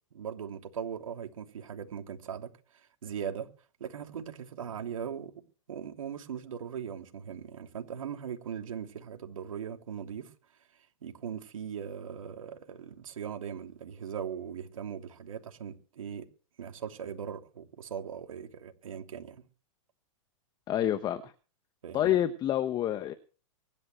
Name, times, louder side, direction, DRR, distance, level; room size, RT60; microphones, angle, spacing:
voice 1, 0.1-3.5 3.8-10.3 10.7-16.3 16.6-19.4 21.8-22.2, right 8 dB, 80° right, 3.1 m, -40 dB
voice 2, 20.7-21.3 21.9-23.1, left 11 dB, 25° left, 1.1 m, -28 dB
24.0 x 12.0 x 3.3 m
hypercardioid pair, 135°, 17 cm